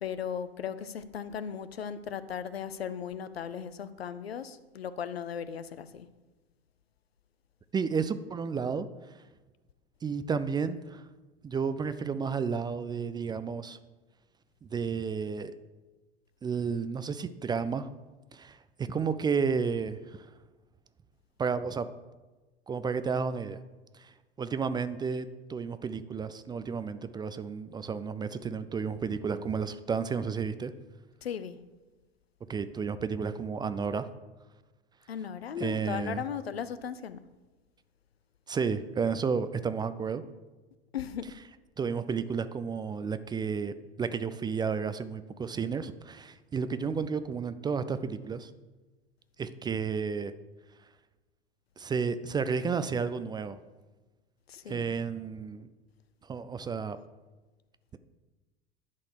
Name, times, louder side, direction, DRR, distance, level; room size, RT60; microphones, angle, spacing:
voice 1, 0.0-6.1 31.2-31.6 35.1-37.2 40.9-41.3 54.5-55.0, left 8 dB, 85° left, 0.6 m, -37 dB
voice 2, 7.7-8.9 10.0-11.0 11.4-13.8 14.7-15.5 16.4-17.9 18.3-20.3 21.4-21.9 22.7-23.6 23.9-30.7 32.5-34.1 35.6-36.2 38.5-40.2 41.8-48.5 49.4-50.3 51.8-53.6 54.7-55.7 56.3-57.0, right 5 dB, 15° right, 0.3 m, -32 dB
10.5 x 4.1 x 6.5 m
figure-of-eight pair, 80°, 30 cm